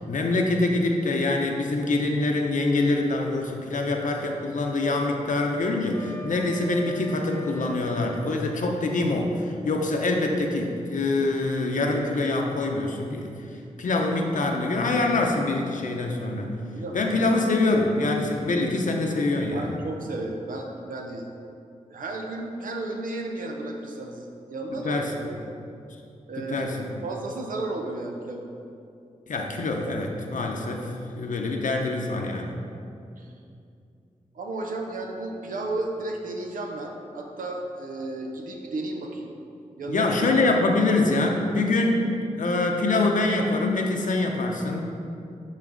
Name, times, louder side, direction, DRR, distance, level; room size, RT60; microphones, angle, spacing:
voice 1, 0.0-13.3 13.8-16.5 16.9-19.7 24.8-25.1 26.4-26.9 29.3-32.5 39.9-42.1 42.4-44.8, left 2 dB, 70° left, 1 dB, 0.8 m, -25 dB
Wind instrument woodwind instrument, 5.9-9.1, left 1 dB, 15° left, 0.8 m, -43 dB
voice 2, 19.5-21.3 21.9-25.4 26.3-28.5 33.2-33.3 34.3-39.4 39.8-40.3 41.7-41.8, right 2 dB, 80° right, 1 dB, 0.7 m, -33 dB
9.6 x 4.0 x 3.9 m, 2.5 s
cardioid pair, 50°, 14 cm